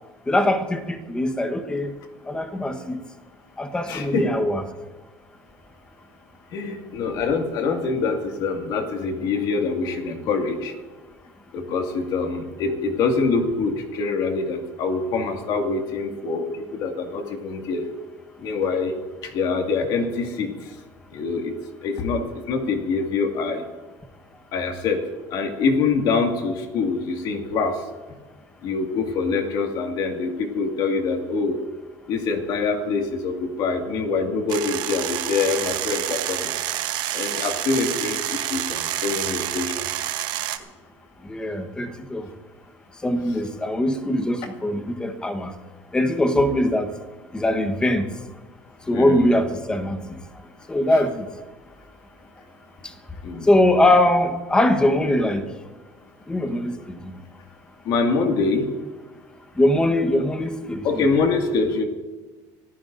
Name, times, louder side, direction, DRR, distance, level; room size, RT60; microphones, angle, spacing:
voice 1, 0.3-1.9 2.3-3.0 3.6-4.6 41.3-42.3 43.0-45.5 45.9-46.9 47.3-48.1 48.9-50.0 50.7-51.3 53.5-55.5 56.3-57.0 59.6-60.8, left 1 dB, 10° left, 7 dB, 1.2 m, -21 dB
voice 2, 3.9-4.3 6.5-10.7 11.5-17.8 18.4-19.0 19.2-20.5 21.1-21.5 21.8-23.6 24.5-25.0 25.3-27.8 28.6-31.6 32.1-36.8 37.1-39.9 48.9-49.3 50.9-51.0 53.2-53.5 57.8-58.7 60.8-61.8, left 4 dB, 55° left, 3 dB, 2.1 m, -25 dB
sound 1, 34.5-40.6, right 13 dB, 60° right, 1.0 m, -28 dB
25.5 x 15.0 x 2.6 m, 1.3 s
cardioid pair, 160°, 8 cm